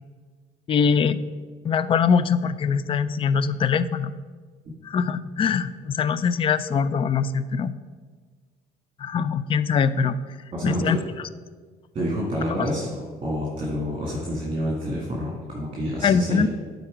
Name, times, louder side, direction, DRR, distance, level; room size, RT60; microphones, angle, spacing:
voice 1, 0.7-1.2 1.6-4.1 4.8-7.7 9.0-10.2 10.6-11.0 16.0-16.5, left 6 dB, 30° left, 15 dB, 0.3 m, -22 dB
voice 2, 10.5-11.0 11.9-12.9 13.2-16.5, equal, 30° right, -5 dB, 1.8 m, -28 dB
8.9 x 4.0 x 4.9 m, 1.5 s
cardioid pair, 110°, 17 cm